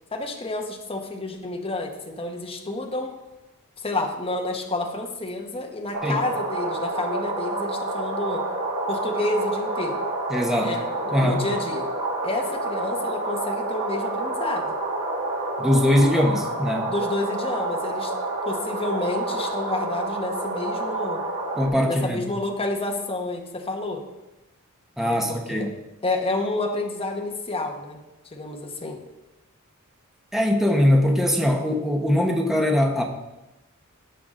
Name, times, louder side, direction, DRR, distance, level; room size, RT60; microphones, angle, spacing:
voice 1, 0.1-3.2 3.8-8.4 8.9-10.1 10.6-11.9 12.2-14.7 16.9-18.1 18.5-21.2 21.9-24.0 25.0-25.7 26.0-28.0 28.2-29.0, left 2 dB, 25° left, 2 dB, 1.2 m, -29 dB
sound 1, 5.9-21.7, right 2 dB, 80° right, 3.6 m, -29 dB
voice 2, 10.3-10.8 11.1-11.4 15.6-16.9 21.5-22.2 25.0-25.7 30.3-33.0, left 1 dB, ahead, 1 dB, 1.0 m, -21 dB
17.0 x 5.8 x 3.8 m, 1.0 s
head